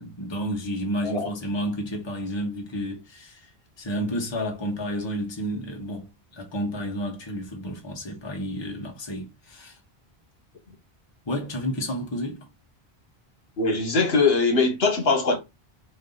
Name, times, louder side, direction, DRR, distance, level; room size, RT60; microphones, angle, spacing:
voice 1, 0.0-3.5 3.8-9.8 11.3-12.5, equal, 25° left, 1.1 m, -31 dB
voice 2, 13.6-15.4, left 4 dB, 70° left, 1.3 m, -21 dB
4.5 x 2.7 x 3.9 m
omnidirectional pair, 1.1 m